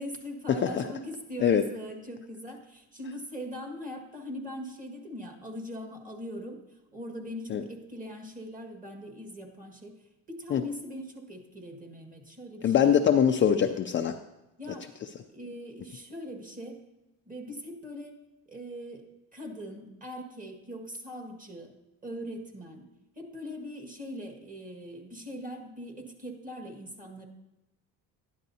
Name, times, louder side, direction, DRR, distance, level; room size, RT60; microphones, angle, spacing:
voice 1, 0.0-13.0 14.6-14.9 15.3-16.8 17.3-21.8 22.0-27.3, equal, 20° right, 3 dB, 1.9 m, -41 dB
voice 2, 12.6-14.2, left 8 dB, 35° left, 5 dB, 0.4 m, -23 dB
12.5 x 10.5 x 2.8 m, 0.99 s
cardioid pair, 110°, 36 cm